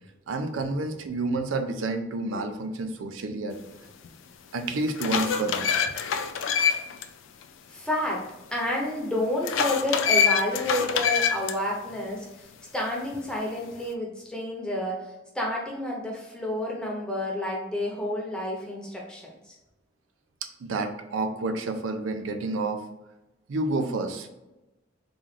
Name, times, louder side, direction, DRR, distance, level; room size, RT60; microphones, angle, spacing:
voice 1, 0.3-3.6 4.5-5.9 20.6-22.8 23.5-24.3, right 2 dB, 85° right, 6 dB, 0.5 m, -29 dB
sound 1, 4.0-4.1 4.7-7.0 7.4-7.5 9.4-11.5, left 7 dB, 80° left, 0.3 m, -25 dB
voice 2, 7.7-8.2 8.5-12.5 12.7-19.5, left 1 dB, 5° left, -3 dB, 0.7 m, -30 dB
3.9 x 2.4 x 3.2 m, 0.98 s
head